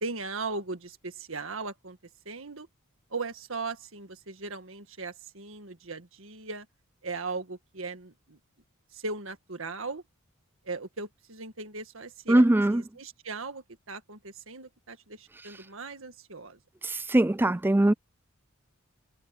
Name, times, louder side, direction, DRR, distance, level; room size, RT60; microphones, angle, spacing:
voice 1, 0.0-2.0 2.3-2.7 3.1-6.7 7.0-8.4 8.9-10.0 10.7-12.4 12.7-16.6, right 3 dB, 65° right, 1.8 m, -38 dB
voice 2, 12.3-12.8 16.8-17.9, right 1 dB, 10° right, 0.3 m, -21 dB
head